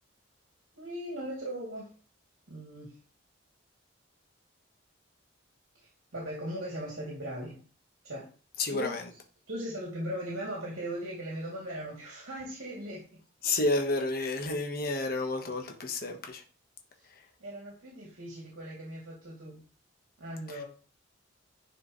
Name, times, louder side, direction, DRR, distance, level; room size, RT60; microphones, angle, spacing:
voice 1, 0.7-1.9 2.5-2.9 5.7-7.6 8.0-8.3 8.7-9.0 9.5-13.0 17.4-19.6 20.2-20.6, equal, 75° right, -4 dB, 2.7 m, -38 dB
voice 2, 8.6-9.0 13.4-16.4, left 2 dB, 45° left, 3 dB, 1.2 m, -30 dB
9.9 x 4.9 x 3.1 m, 0.36 s
head